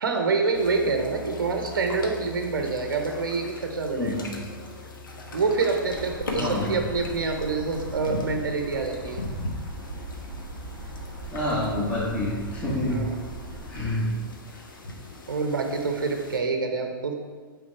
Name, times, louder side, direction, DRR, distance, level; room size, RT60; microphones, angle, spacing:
voice 1, 0.0-4.3 5.3-9.2 12.9-13.2 15.3-17.1, right 4 dB, 65° right, 4 dB, 0.9 m, -26 dB
sound 1, 0.5-16.4, left 2 dB, 65° left, 1.2 m, -39 dB
voice 2, 3.9-4.3 6.3-6.7 11.3-13.0 13.7-14.1, left 1 dB, 10° left, -9 dB, 1.6 m, -27 dB
sound 2, 5.9-13.9, right 2 dB, 25° right, 1.2 m, -40 dB
8.6 x 3.9 x 4.5 m, 1.5 s
figure-of-eight pair, 105°, 12 cm